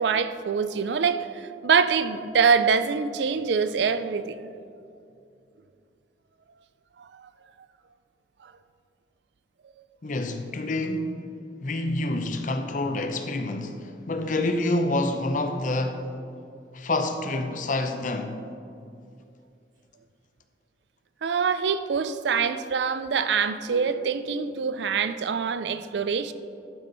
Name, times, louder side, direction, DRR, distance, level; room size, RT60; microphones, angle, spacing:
voice 1, 0.0-4.5 7.0-7.3 8.4-8.5 21.2-26.3, right 6 dB, 75° right, 0.4 m, -25 dB
voice 2, 10.0-11.2 11.6-16.1 16.7-18.4, left 2 dB, 45° left, 0.6 m, -27 dB
11.5 x 5.4 x 3.9 m
head